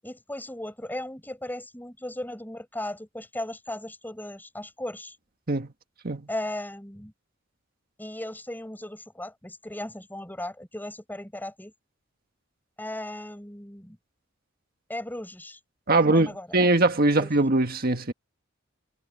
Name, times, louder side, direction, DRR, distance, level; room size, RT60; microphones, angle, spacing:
voice 1, 0.0-5.2 6.3-7.1 8.0-11.7 12.8-14.0 14.9-15.6 16.0-16.5 17.2-17.3, left 1 dB, 10° left, 7.6 m, -36 dB
voice 2, 15.9-18.1, right 2 dB, 45° right, 1.6 m, -22 dB
head